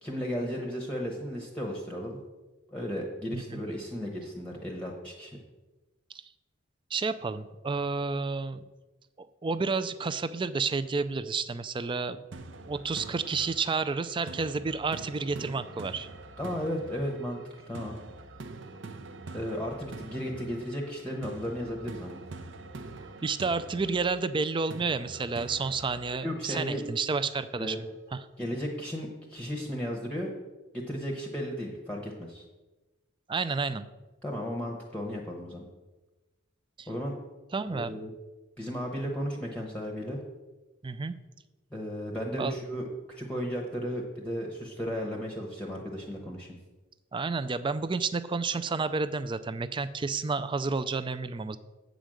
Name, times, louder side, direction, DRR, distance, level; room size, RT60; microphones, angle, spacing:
voice 1, 0.0-2.2 2.7-5.4 16.4-18.0 19.3-22.2 26.2-26.8 27.6-27.9 28.4-30.3 30.7-32.4 34.2-35.6 36.9-37.1 37.7-38.1 38.6-40.2 41.7-46.6, equal, 5° left, 0 dB, 0.9 m, -35 dB
voice 2, 3.3-3.6 6.1-6.2 6.9-8.6 9.2-12.2 12.7-16.1 23.2-28.3 33.3-33.9 36.8-36.9 37.5-38.0 40.8-41.2 42.4-42.6 47.1-51.6, right 4 dB, 25° right, 13 dB, 0.4 m, -30 dB
sound 1, 12.3-27.3, right 3 dB, 60° right, 0.7 m, -45 dB
8.1 x 5.1 x 7.6 m, 1.2 s
head